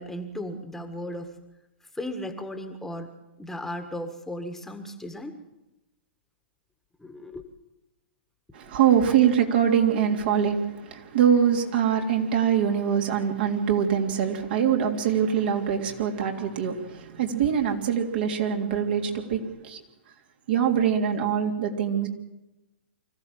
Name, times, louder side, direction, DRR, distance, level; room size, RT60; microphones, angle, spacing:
voice 1, 0.0-1.4 1.9-5.4 7.0-7.4 9.0-9.3, left 1 dB, 5° left, 6 dB, 1.8 m, -36 dB
voice 2, 8.5-19.8 20.5-22.1, right 8 dB, 55° right, 2 dB, 3.3 m, -23 dB
25.0 x 15.0 x 7.6 m, 0.98 s
hypercardioid pair, 115°, 6 cm